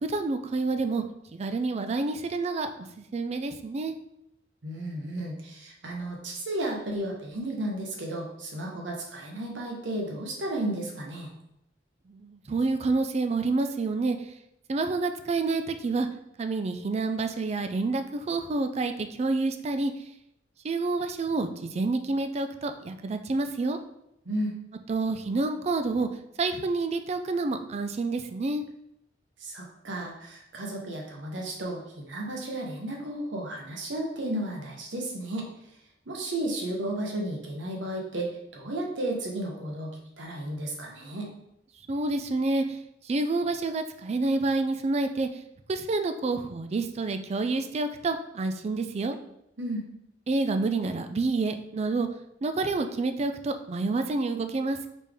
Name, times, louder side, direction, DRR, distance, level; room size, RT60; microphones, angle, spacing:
voice 1, 0.0-1.0 1.3-3.9 12.1-14.3 14.7-16.1 16.4-19.9 20.6-23.8 24.9-26.1 26.4-28.6 41.9-42.8 43.0-45.4 45.7-49.2 50.3-52.1 52.4-54.9, right 3 dB, 35° right, 7 dB, 0.3 m, -28 dB
voice 2, 4.6-11.3 24.2-24.5 29.4-35.5 36.1-41.3 49.6-49.9, right 1 dB, 80° right, 0 dB, 1.0 m, -33 dB
4.1 x 3.5 x 3.4 m, 0.80 s
head